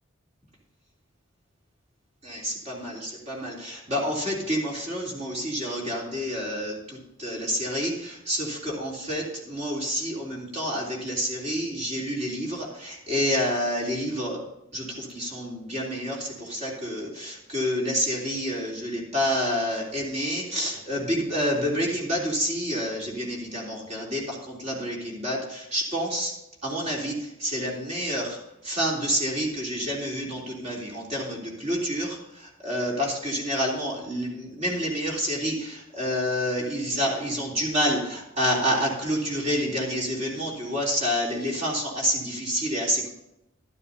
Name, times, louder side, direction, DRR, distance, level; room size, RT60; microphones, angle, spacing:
voice 1, 2.2-6.7 7.2-14.4 14.7-26.3 26.6-27.1 27.4-28.4 28.6-32.2 32.6-43.1, equal, 35° right, -3 dB, 3.3 m, -28 dB
12.5 x 12.0 x 2.8 m, 0.86 s
head